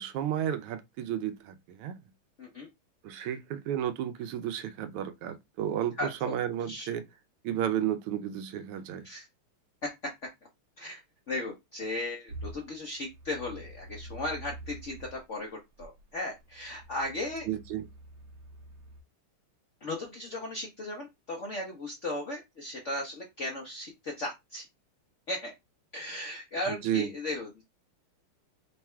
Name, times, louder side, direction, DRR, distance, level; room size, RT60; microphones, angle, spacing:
voice 1, 0.0-1.9 3.0-7.0 7.4-9.1 17.5-17.8 26.7-27.1, right 10 dB, 85° right, 1.5 m, -32 dB
voice 2, 6.0-6.4 6.7-6.9 9.0-9.3 9.8-9.9 10.8-11.0 11.3-17.5 19.8-24.7 25.3-25.5 25.9-27.6, left 2 dB, 65° left, 0.7 m, -36 dB
sound 1, 12.3-15.2 15.8-19.0, right 1 dB, 60° right, 1.4 m, -46 dB
3.9 x 2.3 x 4.3 m
omnidirectional pair, 2.4 m